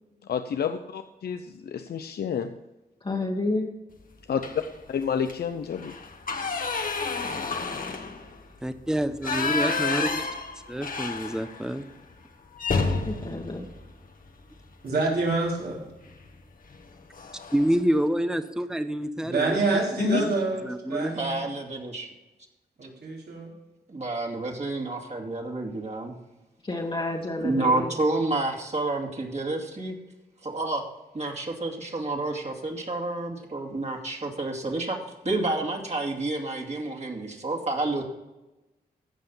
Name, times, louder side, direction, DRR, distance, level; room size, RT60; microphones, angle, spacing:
voice 1, 0.3-2.5 4.3-4.4 4.9-5.9 20.0-20.2, left 7 dB, 75° left, 8 dB, 0.6 m, -29 dB
voice 2, 3.0-3.7 13.0-13.7 26.6-27.9, left 2 dB, 35° left, -2 dB, 1.5 m, -30 dB
sound 1, 4.4-4.8 5.2-5.3 5.7-11.7 12.0-12.2 12.6-14.7 16.0-16.3 16.7-16.8 17.1-17.8, left 4 dB, 55° left, 1.4 m, -30 dB
voice 3, 8.6-10.3 10.7-11.9 17.5-20.3 20.6-21.1, right 1 dB, 5° right, 11 dB, 0.8 m, -28 dB
voice 4, 14.8-15.9 19.2-21.5 22.8-23.5, right 3 dB, 75° right, -3 dB, 3.7 m, -27 dB
voice 5, 21.2-22.1 23.9-26.1 27.4-29.9 30.4-30.8 31.1-35.0 35.2-38.0, right 2 dB, 45° right, 1 dB, 2.5 m, -29 dB
15.0 x 5.7 x 5.5 m, 1.0 s
cardioid pair, 60°, 17 cm